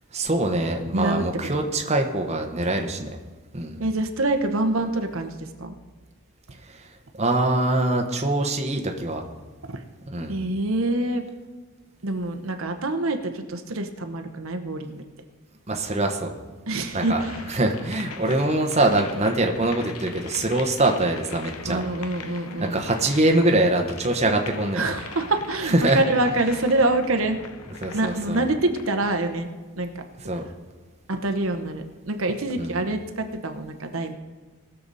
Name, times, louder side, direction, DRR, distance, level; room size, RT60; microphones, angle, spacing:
voice 1, 0.1-3.1 3.5-3.8 6.7-6.8 7.2-9.2 10.1-10.3 15.7-16.3 16.9-17.2 17.5-21.8 22.6-24.9 25.6-26.0 27.8-28.5 30.2-30.4 32.6-32.8, right 2 dB, 30° right, 3 dB, 1.0 m, -23 dB
voice 2, 0.9-1.2 1.5-1.6 3.8-5.7 9.7-9.8 10.3-11.2 12.0-15.0 16.7-17.5 21.6-22.8 24.7-27.4 27.9-29.5 29.8-29.9 31.1-34.1, right 2 dB, 65° right, 6 dB, 0.9 m, -26 dB
sound 1, 17.0-29.1, left 5 dB, 80° left, 0.9 m, -41 dB
20.5 x 6.9 x 4.1 m, 1.3 s
head